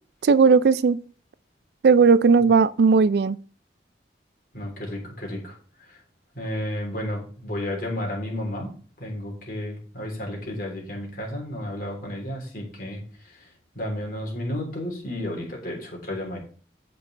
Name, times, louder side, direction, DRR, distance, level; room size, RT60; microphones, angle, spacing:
voice 1, 0.2-1.0 1.8-3.4, right 5 dB, 65° right, 0.4 m, -17 dB
voice 2, 4.5-5.6 6.3-8.7 9.0-13.5 13.7-16.4, left 1 dB, 50° left, 3.4 m, -32 dB
15.5 x 5.4 x 3.3 m
head